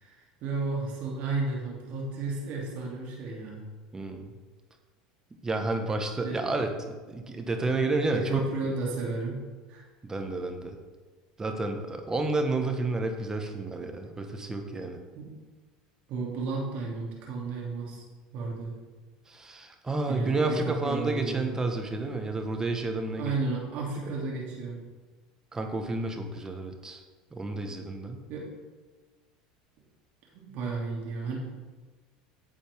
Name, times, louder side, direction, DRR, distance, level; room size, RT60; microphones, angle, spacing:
voice 1, 0.0-3.6 6.2-6.4 8.1-9.4 9.7-9.8 15.1-15.3 16.1-18.0 18.3-18.7 20.1-21.5 23.2-24.8 28.3-28.5 30.3-31.4, right 3 dB, 55° right, -3 dB, 3.1 m, -33 dB
voice 2, 3.9-4.3 5.4-8.3 8.6-8.7 10.0-10.7 11.4-15.0 19.3-23.3 25.5-27.0 27.3-28.3, right 2 dB, 20° right, 5 dB, 1.4 m, -30 dB
10.5 x 7.2 x 3.7 m, 1.3 s
hypercardioid pair, 85°, 3 cm